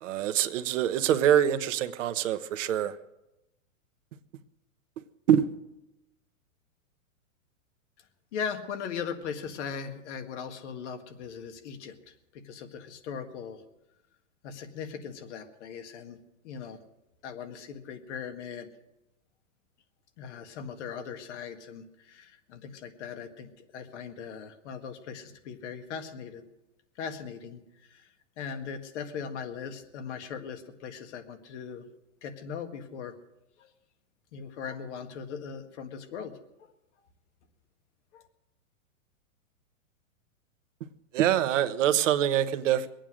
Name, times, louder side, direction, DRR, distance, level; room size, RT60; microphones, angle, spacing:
voice 1, 0.0-3.0 5.3-5.5 41.1-42.9, right 10 dB, 65° right, 11 dB, 1.1 m, -25 dB
voice 2, 8.3-13.6 14.4-16.2 16.4-16.8 17.2-18.7 20.2-26.4 27.0-27.6 27.9-28.1 28.4-31.8 32.2-33.1 33.6-33.7 34.3-36.7 38.1-38.2, left 6 dB, 55° left, 7 dB, 1.8 m, -39 dB
23.0 x 9.1 x 6.4 m, 0.94 s
hypercardioid pair, 140°, 41 cm